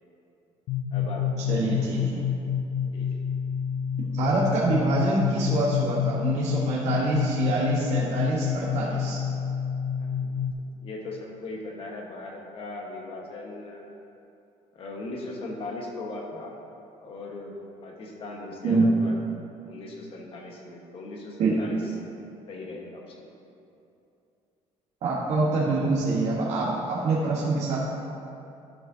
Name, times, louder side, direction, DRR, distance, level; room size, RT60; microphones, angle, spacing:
sound 1, 0.7-10.5, left 8 dB, 85° left, 0.4 m, -28 dB
voice 1, 0.9-1.8 2.9-3.1 10.0-10.5 10.8-13.9 14.7-16.5 17.0-17.6 17.8-19.1 19.7-21.8 22.5-23.2, left 2 dB, 50° left, 0 dB, 1.3 m, -39 dB
voice 2, 1.5-2.2 4.0-9.2 18.6-18.9 21.4-21.6 25.0-27.9, right 3 dB, 65° right, -6 dB, 1.3 m, -25 dB
12.0 x 6.4 x 2.8 m, 2.7 s
cardioid pair, 130°, 12 cm